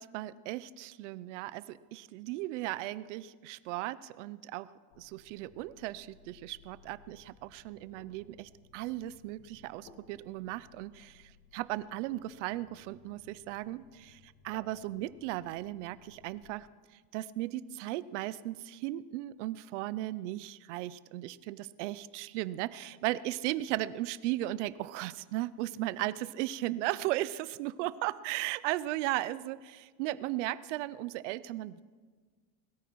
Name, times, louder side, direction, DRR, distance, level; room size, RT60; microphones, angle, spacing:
voice 1, 0.0-4.7 5.0-16.7 17.1-31.8, right 16 dB, 85° right, 17 dB, 0.7 m, -36 dB
sound 1, 4.9-16.4, left 5 dB, 70° left, 2.8 m, -61 dB
21.0 x 13.5 x 4.7 m, 1.5 s
cardioid pair, 170°, 35 cm